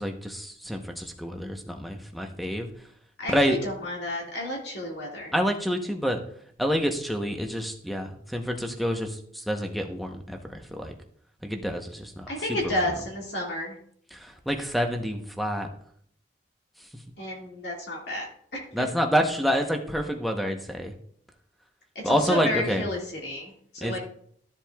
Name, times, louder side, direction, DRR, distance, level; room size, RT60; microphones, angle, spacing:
voice 1, 0.0-2.7 3.3-3.6 5.3-6.2 6.6-10.9 11.4-12.9 14.1-15.7 18.7-20.9 22.0-22.9 23.8-24.0, equal, ahead, 4 dB, 0.8 m, -28 dB
voice 2, 3.2-5.3 12.3-13.7 17.2-18.3 18.8-18.9 22.0-24.0, left 1 dB, 65° left, -2 dB, 2.0 m, -31 dB
13.5 x 7.4 x 2.3 m, 0.64 s
head